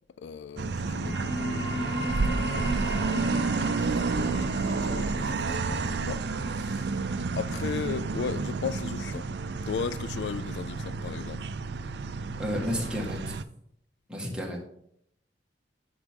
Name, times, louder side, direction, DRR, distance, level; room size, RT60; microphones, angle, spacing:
voice 1, 0.2-7.0 7.3-9.3 9.7-11.5, left 6 dB, 70° left, 0.3 m, -37 dB
sound 1, 0.6-13.4, right 4 dB, 70° right, 0.5 m, -30 dB
sound 2, 0.7-11.8, equal, 25° left, 3.3 m, -37 dB
voice 2, 12.4-13.4 14.1-14.6, equal, 5° right, 1.8 m, -31 dB
9.6 x 6.0 x 3.7 m
head